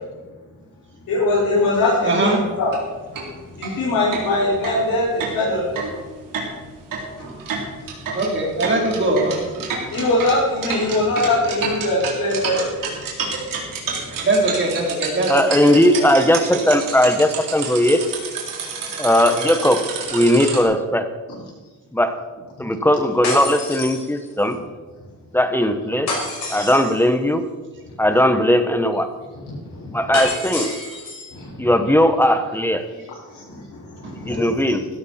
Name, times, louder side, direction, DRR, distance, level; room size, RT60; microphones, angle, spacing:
voice 1, 1.1-2.7 3.6-5.7 7.2-7.3 8.1-8.2 9.9-12.7 29.3-30.0 31.3-31.7 33.3-34.5, left 2 dB, 80° left, -9 dB, 5.5 m, -22 dB
voice 2, 2.0-2.4 8.1-9.7 14.2-15.3 15.6-15.7 16.5-16.6, right 2 dB, 35° right, -1 dB, 3.6 m, -21 dB
sound 1, 2.6-2.8 3.1-3.3 3.6-3.7 4.1-20.6, right 5 dB, 75° right, 3.7 m, -29 dB
voice 3, 15.3-18.0 19.0-21.1 21.9-22.2 22.6-24.6 25.3-26.1 26.5-27.5 28.0-29.1 29.9-30.7 31.6-32.8 34.1-34.9, left 1 dB, 5° left, 9 dB, 1.1 m, -18 dB
sound 2, 23.2-24.5 26.1-27.1 30.1-31.3, left 2 dB, 55° left, 5.6 m, -28 dB
16.0 x 13.0 x 4.4 m, 1.3 s
cardioid pair, 120°, 33 cm